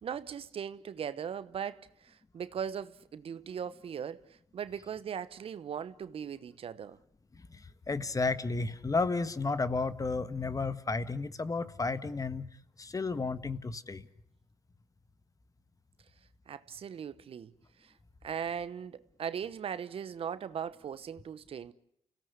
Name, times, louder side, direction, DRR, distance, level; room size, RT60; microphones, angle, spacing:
voice 1, 0.0-4.2 4.5-7.0 16.5-17.5 17.8-17.9 18.2-21.7, right 8 dB, 60° right, 1.1 m, -39 dB
voice 2, 7.9-12.5 12.8-14.1, left 3 dB, 30° left, 1.6 m, -32 dB
29.5 x 17.0 x 8.2 m
supercardioid pair, 50°, 11 cm